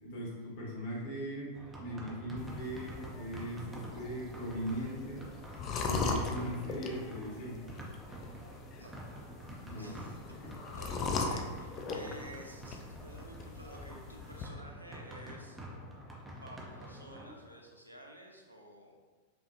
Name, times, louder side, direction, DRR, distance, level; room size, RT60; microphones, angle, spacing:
voice 1, 0.0-5.2 5.8-7.6 9.6-9.9 10.4-10.5 11.9-12.1, equal, 55° left, -5 dB, 1.4 m, -39 dB
sound 1, 1.5-17.3, equal, 15° right, 0.7 m, -48 dB
sound 2, 2.4-14.5, left 3 dB, 35° left, 0.4 m, -40 dB
voice 2, 9.8-10.2 10.5-15.6 16.4-19.0, right 1 dB, 85° right, 0 dB, 0.6 m, -52 dB
5.2 x 2.5 x 2.8 m, 1.4 s
figure-of-eight pair, 90°, 0 cm